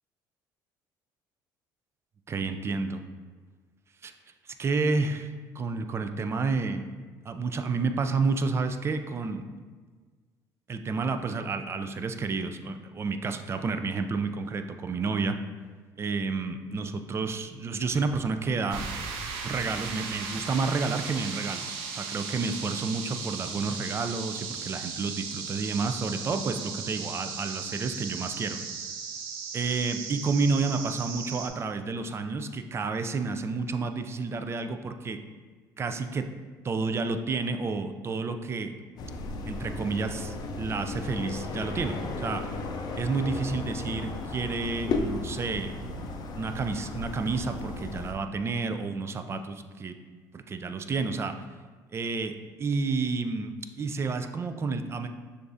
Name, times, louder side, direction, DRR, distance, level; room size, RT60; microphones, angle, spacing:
voice 1, 2.3-3.0 4.0-4.1 4.4-6.9 7.3-9.4 10.7-15.4 16.0-18.8 19.4-28.6 29.5-35.2 35.8-36.3 36.6-38.7 39.5-42.4 43.0-45.9 46.3-49.9 50.3-51.3 51.9-55.1, right 4 dB, 30° right, 8 dB, 0.3 m, -30 dB
sound 1, 18.7-31.5, right 5 dB, 80° right, 0.5 m, -37 dB
sound 2, 39.0-48.1, left 2 dB, 50° left, 0.4 m, -35 dB
6.6 x 2.5 x 2.6 m, 1.5 s
supercardioid pair, 90°, 9 cm